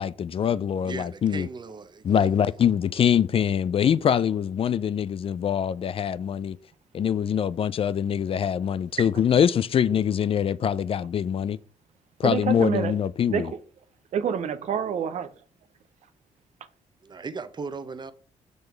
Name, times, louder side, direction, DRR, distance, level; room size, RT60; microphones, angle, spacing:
voice 1, 0.0-1.5 2.0-6.6 6.9-11.6 12.2-13.5, left 8 dB, 50° left, 0.4 m, -24 dB
voice 2, 0.8-2.3 17.0-18.1, right 4 dB, 35° right, 0.9 m, -37 dB
voice 3, 12.2-12.9 13.2-13.4 14.1-15.3, right 7 dB, 70° right, 0.8 m, -27 dB
6.2 x 5.4 x 4.5 m
cardioid pair, 80°, 12 cm